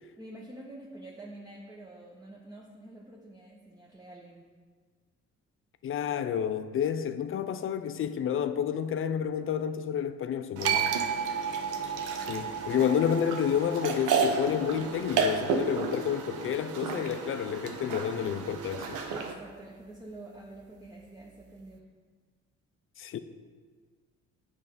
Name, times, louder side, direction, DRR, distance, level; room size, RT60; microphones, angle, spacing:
voice 1, 0.1-4.4 10.7-10.9 19.1-21.8, right 1 dB, 10° right, 0.8 m, -47 dB
voice 2, 5.8-10.9 12.3-19.0 23.0-23.2, left 8 dB, 45° left, 0.4 m, -30 dB
sound 1, 10.6-16.9, right 8 dB, 50° right, 0.5 m, -35 dB
sound 2, 10.6-19.3, right 5 dB, 85° right, 0.7 m, -33 dB
7.9 x 3.2 x 5.3 m
cardioid pair, 90°, 30 cm